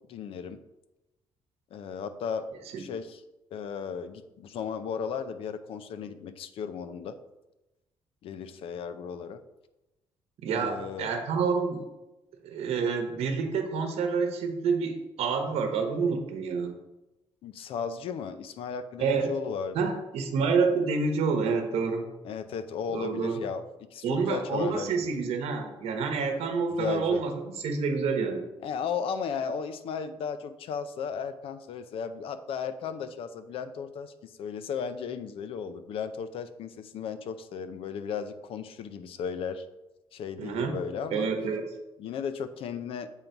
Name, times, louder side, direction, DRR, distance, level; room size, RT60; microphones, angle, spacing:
voice 1, 0.1-0.6 1.7-2.5 2.8-3.2 3.5-7.2 8.2-9.4 10.5-11.1 17.4-19.8 22.2-23.6 23.9-25.1 26.7-27.2 28.6-39.6 40.1-41.3 42.0-43.1, left 6 dB, 60° left, 12 dB, 0.5 m, -35 dB
voice 2, 10.4-11.9 12.4-16.7 19.0-19.3 19.7-22.0 22.9-23.4 24.0-27.3 27.6-28.4 40.4-40.8 41.1-41.6, right 5 dB, 70° right, 5 dB, 1.0 m, -28 dB
7.3 x 3.9 x 4.5 m, 0.99 s
cardioid pair, 175°, 11 cm